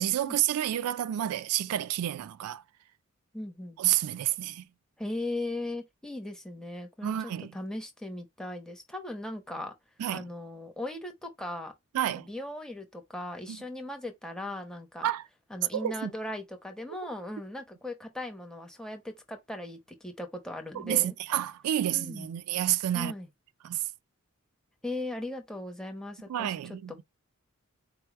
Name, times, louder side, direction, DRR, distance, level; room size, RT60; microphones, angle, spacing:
voice 1, 0.0-2.6 3.8-4.6 7.0-7.5 10.0-10.3 11.9-12.3 13.5-13.6 15.0-15.2 15.7-16.1 20.7-23.1 23.6-23.8 26.3-26.9, right 12 dB, 90° right, 0.3 m, -29 dB
voice 2, 3.3-3.8 5.0-9.7 10.1-11.7 12.0-15.1 15.5-21.1 21.9-22.3 22.9-23.3 24.8-26.8, left 1 dB, 5° left, 0.8 m, -38 dB
4.4 x 2.1 x 4.6 m
head